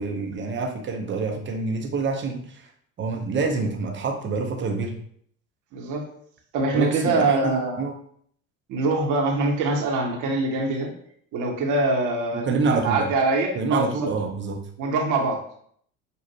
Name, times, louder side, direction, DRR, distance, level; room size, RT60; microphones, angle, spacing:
voice 1, 0.0-2.7 3.0-5.0 6.7-7.9 12.3-13.1 13.5-14.6, right 4 dB, 30° right, 2 dB, 0.9 m, -27 dB
voice 2, 5.7-6.1 6.5-7.8 8.7-10.9 11.3-13.8 14.8-15.4, right 3 dB, 45° right, 1 dB, 1.2 m, -24 dB
6.8 x 2.5 x 2.9 m, 0.64 s
hypercardioid pair, 75°, 41 cm